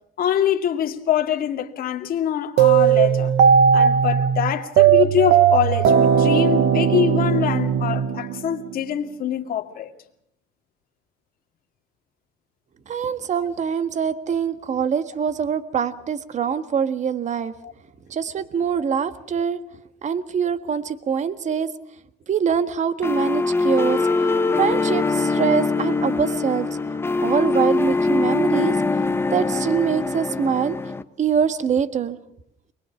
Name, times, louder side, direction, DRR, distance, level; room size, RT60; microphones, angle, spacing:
voice 1, 0.2-3.3 3.7-9.9 13.4-13.5 17.6-17.7, left 10 dB, 60° left, 2.2 m, -24 dB
sound 1, 2.6-8.7, right 8 dB, 80° right, 1.1 m, -17 dB
voice 2, 12.9-17.5 18.1-19.6 20.0-21.7 22.3-24.0 24.6-26.7 27.2-28.8 29.3-30.8 31.2-32.2, right 7 dB, 45° right, 1.6 m, -23 dB
sound 2, 23.0-31.0, left 3 dB, 15° left, 1.0 m, -22 dB
23.5 x 20.5 x 7.2 m
cardioid pair, 110°, 17 cm